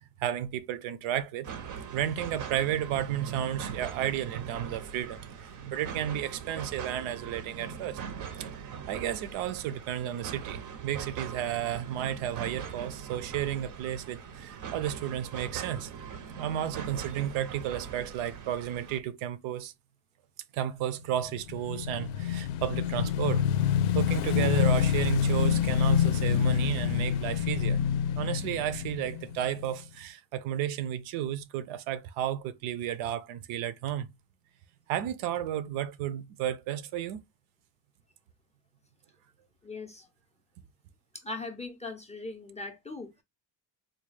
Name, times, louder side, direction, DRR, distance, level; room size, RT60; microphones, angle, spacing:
voice 1, 0.2-1.5 1.9-8.0 8.4-8.5 8.9-15.9 16.4-19.7 20.5-23.4 23.9-27.8 28.2-34.1 34.9-37.2, right 11 dB, 85° right, 0.6 m, -32 dB
sound 1, 1.4-19.0, right 7 dB, 45° right, 0.5 m, -41 dB
Motorcycle / Engine, 21.3-29.8, left 9 dB, 90° left, 0.5 m, -27 dB
voice 2, 39.6-40.1 41.1-43.2, left 3 dB, 15° left, 0.3 m, -40 dB
3.8 x 2.3 x 3.2 m
cardioid pair, 160°, 47 cm